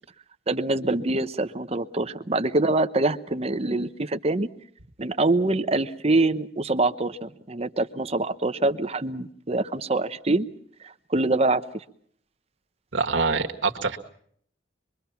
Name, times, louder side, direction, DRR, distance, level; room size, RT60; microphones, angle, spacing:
voice 1, 0.5-4.5 5.0-10.5 10.8-11.8, right 2 dB, 35° right, 10 dB, 0.9 m, -25 dB
voice 2, 12.9-14.0, right 4 dB, 85° right, 3 dB, 1.8 m, -25 dB
25.0 x 23.0 x 5.8 m, 0.64 s
head